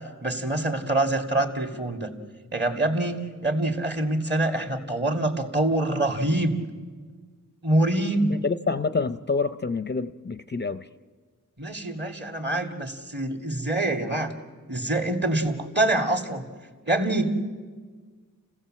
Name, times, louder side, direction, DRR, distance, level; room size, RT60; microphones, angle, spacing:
voice 1, 0.0-2.1 2.5-6.6 7.6-8.4 11.6-14.3 14.7-16.4 16.9-17.3, right 1 dB, 35° right, 2.3 m, -25 dB
voice 2, 8.4-10.9, left 4 dB, 35° left, 0.6 m, -27 dB
29.5 x 16.0 x 7.6 m
wide cardioid pair, 95°, 33 cm